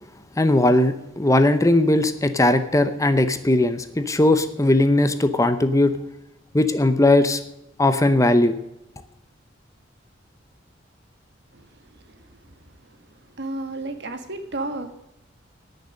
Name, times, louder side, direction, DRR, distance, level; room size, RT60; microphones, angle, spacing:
voice 1, 0.4-5.9 6.5-7.4 7.8-8.6, left 1 dB, 15° left, 10 dB, 0.7 m, -18 dB
voice 2, 11.5-14.9, right 2 dB, 60° right, 7 dB, 1.7 m, -34 dB
18.5 x 6.8 x 6.4 m, 0.86 s
head